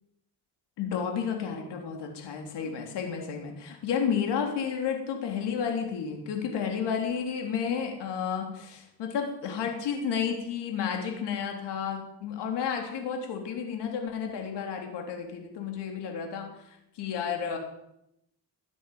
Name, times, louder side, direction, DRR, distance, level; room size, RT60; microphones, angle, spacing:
voice 1, 0.8-17.6, left 7 dB, 80° left, 2 dB, 3.6 m, -32 dB
15.0 x 10.0 x 9.5 m, 0.81 s
cardioid pair, 75°, 41 cm